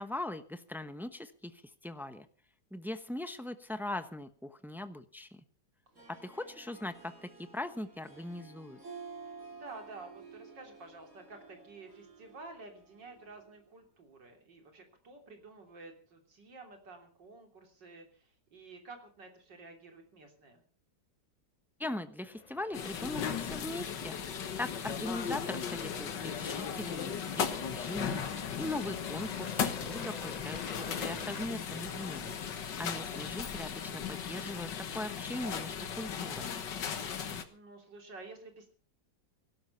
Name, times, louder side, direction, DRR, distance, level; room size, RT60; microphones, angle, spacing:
voice 1, 0.0-1.5 1.8-2.3 2.7-5.4 6.1-8.8 21.8-24.2 24.6-28.2 28.5-32.3 32.8-36.6, left 1 dB, ahead, 10 dB, 0.6 m, -40 dB
Harp, 5.9-13.6, right 4 dB, 45° right, 7.1 m, -52 dB
voice 2, 9.5-20.6 32.6-32.9 37.5-38.7, right 3 dB, 90° right, 4 dB, 3.9 m, -51 dB
Aircraft, 22.3-31.5, left 5 dB, 45° left, 0.5 m, -47 dB
sound 1, 22.7-37.4, left 7 dB, 90° left, 2.0 m, -37 dB
17.5 x 12.0 x 5.6 m, 0.41 s
omnidirectional pair, 1.9 m